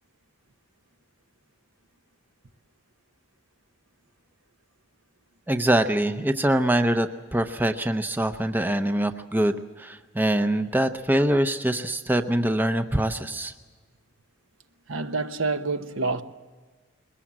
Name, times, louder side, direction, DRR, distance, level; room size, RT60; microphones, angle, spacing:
voice 1, 5.5-13.5, right 1 dB, 10° right, 0.6 m, -24 dB
voice 2, 14.9-16.2, right 3 dB, 70° right, 1.1 m, -27 dB
22.5 x 20.5 x 7.5 m
head